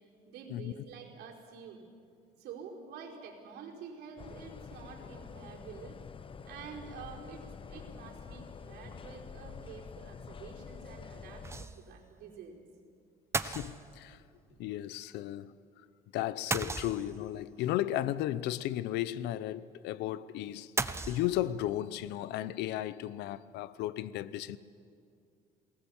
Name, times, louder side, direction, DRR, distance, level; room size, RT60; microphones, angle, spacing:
voice 1, 0.3-1.8 2.4-6.0 6.4-12.7 14.5-14.6, right 6 dB, 80° right, 4.7 m, -48 dB
sound 1, 4.2-11.7, left 6 dB, 30° left, 0.8 m, -47 dB
sound 2, 11.4-12.0 12.3-12.4 13.3-14.2 16.5-17.4 20.8-21.7, right 3 dB, 15° right, 0.9 m, -35 dB
voice 2, 13.4-14.2 14.6-15.5 16.1-24.6, left 13 dB, 90° left, 0.8 m, -35 dB
28.5 x 19.5 x 7.2 m
cardioid pair, 110°, 17 cm